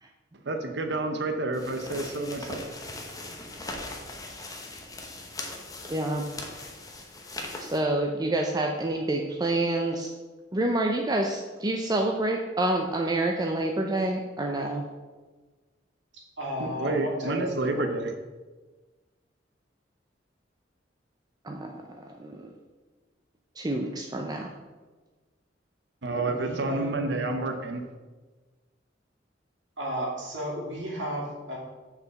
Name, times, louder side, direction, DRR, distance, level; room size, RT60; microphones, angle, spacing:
voice 1, 0.4-2.8 16.6-18.1 26.0-27.9, right 2 dB, 65° right, 5 dB, 0.7 m, -29 dB
sound 1, 1.5-7.8, left 2 dB, 20° left, 1.0 m, -40 dB
voice 2, 5.9-6.3 7.6-10.1 10.5-14.9 21.4-21.8 22.2-22.5 23.6-24.5, right 2 dB, 20° right, 2 dB, 0.5 m, -27 dB
voice 3, 16.4-17.8 26.2-27.3 29.8-31.6, equal, 90° right, -3 dB, 2.6 m, -34 dB
6.5 x 4.9 x 6.9 m, 1.3 s
head